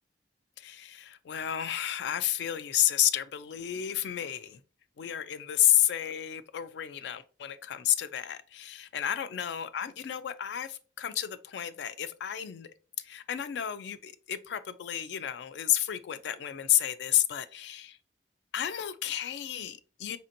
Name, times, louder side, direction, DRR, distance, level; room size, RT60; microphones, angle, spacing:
voice 1, 0.6-4.6 5.0-12.7 13.0-18.0 18.5-20.2, left 11 dB, 70° left, 0.3 m, -31 dB
4.2 x 2.7 x 2.5 m
head